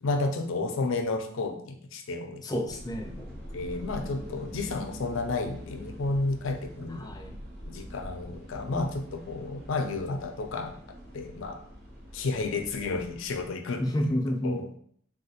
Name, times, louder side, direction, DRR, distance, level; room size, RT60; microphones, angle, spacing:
voice 1, 0.0-2.4 3.5-7.1 7.7-10.7 11.1-11.6 12.1-14.1 14.4-14.7, left 3 dB, 80° left, 6 dB, 0.4 m, -31 dB
voice 2, 2.4-3.3 6.9-7.3 13.8-14.8, equal, 20° left, 3 dB, 0.4 m, -30 dB
sound 1, 2.7-13.5, equal, 55° right, 0.8 m, -44 dB
3.4 x 2.3 x 2.7 m, 0.62 s
head